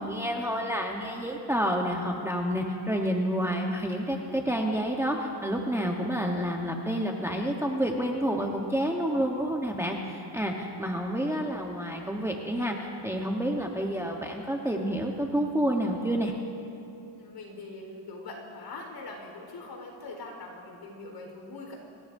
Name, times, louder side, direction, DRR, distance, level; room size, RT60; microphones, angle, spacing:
voice 1, 0.0-16.3, equal, 5° right, 0 dB, 1.1 m, -29 dB
voice 2, 17.1-21.7, left 2 dB, 60° left, 0 dB, 4.3 m, -42 dB
25.5 x 16.0 x 2.7 m, 2.7 s
cardioid pair, 115°, 48 cm